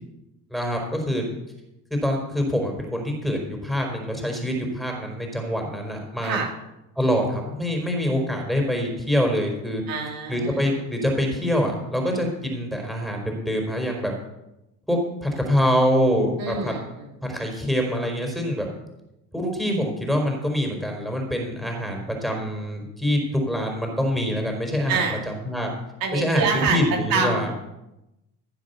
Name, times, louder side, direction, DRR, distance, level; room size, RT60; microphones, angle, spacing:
voice 1, 0.5-1.2 1.9-6.4 7.0-9.8 10.3-14.1 14.9-16.7 17.2-18.7 19.3-23.2 23.5-25.7 26.1-27.5, equal, ahead, 1 dB, 4.5 m, -25 dB
voice 2, 9.9-10.7 16.4-16.8 24.9-25.2 26.0-26.8 27.1-27.5, right 5 dB, 65° right, 0 dB, 3.2 m, -25 dB
16.0 x 7.6 x 6.9 m, 0.92 s
cardioid pair, 100°, 38 cm